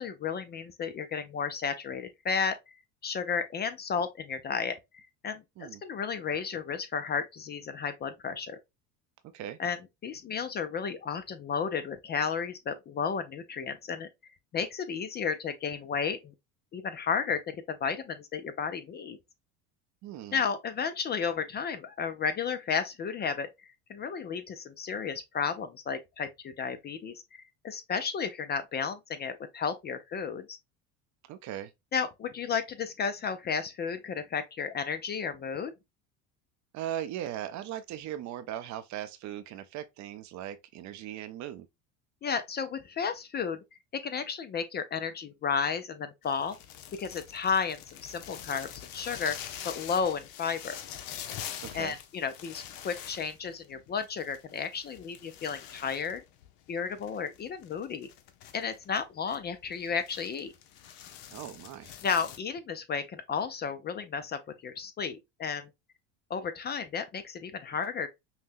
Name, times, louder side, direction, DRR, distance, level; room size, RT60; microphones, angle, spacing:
voice 1, 0.0-2.7 3.0-8.6 9.6-16.3 16.7-19.2 20.3-23.5 23.9-30.6 31.9-35.7 42.2-43.6 43.9-46.6 47.0-49.4 49.6-50.8 51.7-56.2 56.7-58.1 58.5-60.5 62.0-65.7 66.3-68.1, left 6 dB, 30° left, 0.4 m, -33 dB
voice 2, 20.0-20.4 31.3-31.7 36.7-41.7 51.6-52.0 61.3-61.9, right 11 dB, 50° right, 0.6 m, -39 dB
sound 1, 46.2-62.4, left 10 dB, 70° left, 0.8 m, -45 dB
5.6 x 2.1 x 2.5 m
supercardioid pair, 105°, 37 cm